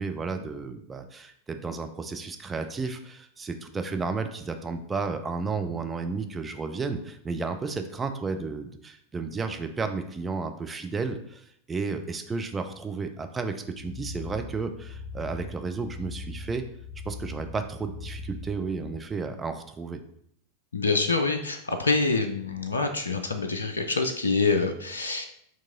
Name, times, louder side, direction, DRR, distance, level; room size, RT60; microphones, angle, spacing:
voice 1, 0.0-16.6 17.1-20.0, right 4 dB, 15° right, 6 dB, 0.4 m, -32 dB
sound 1, 13.7-18.9, left 2 dB, 75° right, 1.9 m, -40 dB
voice 2, 20.7-25.3, left 3 dB, 75° left, 6 dB, 0.4 m, -26 dB
4.5 x 3.0 x 3.7 m, 0.69 s
figure-of-eight pair, 90°, 0 cm